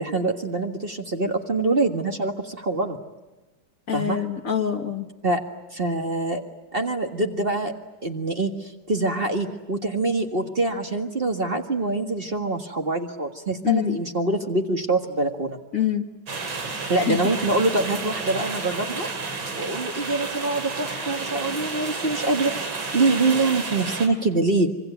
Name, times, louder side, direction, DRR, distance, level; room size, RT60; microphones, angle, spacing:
voice 1, 0.0-3.0 3.9-4.2 5.2-5.4 5.7-6.4 6.7-7.7 8.0-15.6 16.9-19.1 19.5-22.5 22.9-24.7, right 2 dB, 30° right, 4 dB, 1.8 m, -24 dB
voice 2, 3.9-5.1 13.6-14.0 15.7-16.1 17.0-17.2, left 9 dB, 45° left, 6 dB, 1.7 m, -25 dB
sound 1, 16.3-24.1, right 4 dB, 85° right, 3.5 m, -31 dB
26.0 x 24.5 x 9.1 m, 1.1 s
omnidirectional pair, 2.1 m